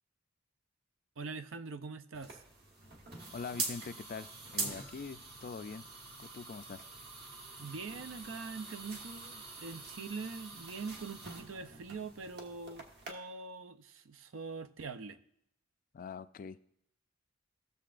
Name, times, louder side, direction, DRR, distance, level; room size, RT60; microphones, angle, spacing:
voice 1, 1.2-2.4 7.6-15.2, right 4 dB, 70° right, 12 dB, 0.5 m, -43 dB
sound 1, 2.1-13.1, right 3 dB, 55° right, 1.4 m, -44 dB
voice 2, 3.3-5.8 6.2-6.8 15.9-16.6, left 5 dB, 40° left, 13 dB, 0.3 m, -43 dB
16.5 x 6.8 x 2.5 m, 0.73 s
head